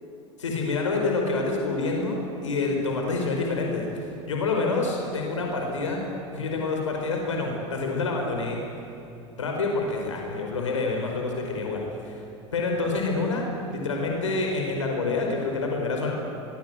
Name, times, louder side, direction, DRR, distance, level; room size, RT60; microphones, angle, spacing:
voice 1, 0.4-6.0 6.3-8.6 9.4-12.2 12.5-13.4 13.7-16.1, left 3 dB, 80° left, 1 dB, 5.0 m, -27 dB
23.5 x 23.5 x 8.0 m, 2.9 s
hypercardioid pair, 80°, 16 cm